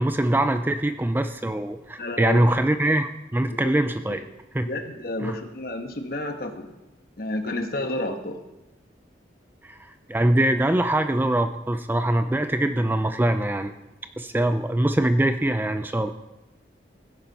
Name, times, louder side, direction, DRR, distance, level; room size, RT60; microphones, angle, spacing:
voice 1, 0.0-4.2 4.5-4.7 5.2-5.4 9.6-9.8 10.1-13.7 14.2-16.1, right 1 dB, 10° right, 9 dB, 0.4 m, -23 dB
voice 2, 2.0-2.4 3.5-3.7 4.1-4.2 4.6-6.7 7.2-8.4, left 1 dB, 55° left, 6 dB, 1.3 m, -31 dB
16.0 x 10.0 x 4.1 m, 0.99 s
head